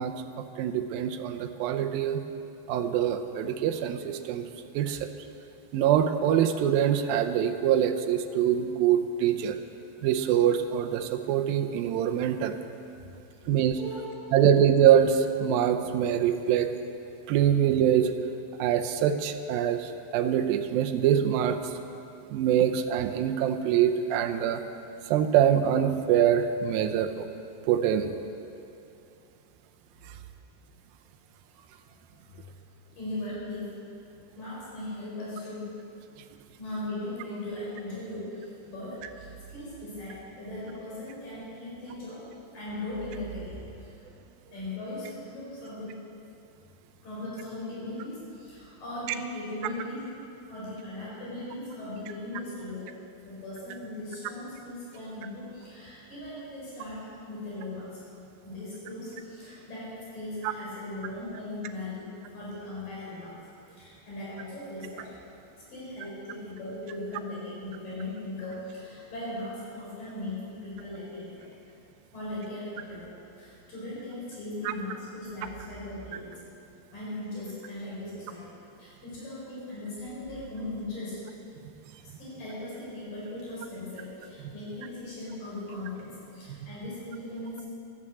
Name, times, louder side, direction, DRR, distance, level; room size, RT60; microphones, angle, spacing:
voice 1, 0.0-2.2 2.7-4.5 4.7-5.1 5.7-9.6 10.0-12.5 13.5-13.8 14.3-16.7 17.3-18.1 18.6-21.7 22.3-24.6 25.1-27.3 27.7-28.1 60.4-60.5 74.7-74.8, right 9 dB, 75° right, 7 dB, 2.4 m, -24 dB
voice 2, 13.0-13.4 13.7-14.3 31.9-32.0 32.3-32.5 33.0-33.8 34.4-35.7 36.6-42.3 42.5-43.9 44.5-46.0 47.0-50.1 50.5-52.9 53.3-58.0 58.4-63.4 63.7-65.1 65.7-71.6 72.1-76.4 76.9-78.5 78.8-81.2 82.0-87.6, left 1 dB, 60° left, -7 dB, 6.3 m, -38 dB
13.0 x 11.0 x 7.9 m, 2.7 s
omnidirectional pair, 4.5 m